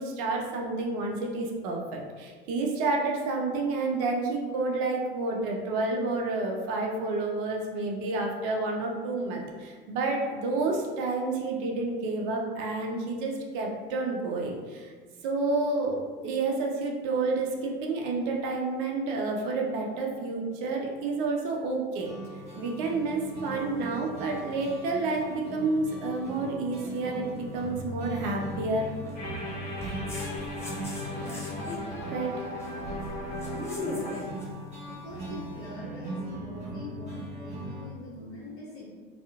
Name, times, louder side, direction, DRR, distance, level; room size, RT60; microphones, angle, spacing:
voice 1, 0.0-14.9 15.2-22.1 22.6-28.9 32.1-32.4, right 3 dB, 55° right, 0 dB, 0.5 m, -30 dB
sound 1, 22.0-37.9, right 1 dB, 20° right, 1.4 m, -39 dB
sound 2, 22.3-35.5, left 2 dB, 10° left, 0.6 m, -43 dB
sound 3, 29.2-34.2, left 2 dB, 65° left, 0.7 m, -38 dB
voice 2, 33.8-34.5 34.9-38.8, left 1 dB, 45° left, -5 dB, 1.1 m, -44 dB
2.6 x 2.4 x 2.3 m, 1.5 s
figure-of-eight pair, 70°, 32 cm